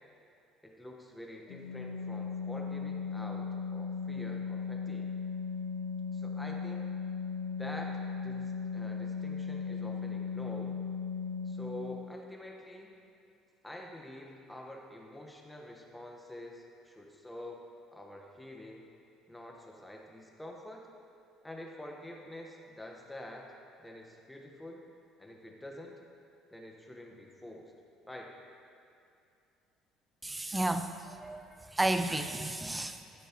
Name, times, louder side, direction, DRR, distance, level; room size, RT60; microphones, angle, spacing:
voice 1, 0.6-5.1 6.1-6.9 7.6-10.8 11.4-12.9 13.6-17.6 17.9-18.9 19.3-20.9 21.4-23.5 23.8-24.8 25.2-26.0 26.5-27.7 28.1-28.3, left 1 dB, 5° left, 0 dB, 1.4 m, -47 dB
Organ, 1.5-12.1, left 5 dB, 80° left, 0.5 m, -37 dB
voice 2, 30.2-30.9 31.2-31.4 31.8-33.0, right 2 dB, 15° right, 8 dB, 0.6 m, -31 dB
12.5 x 9.3 x 3.1 m, 2.5 s
supercardioid pair, 80°, 0 cm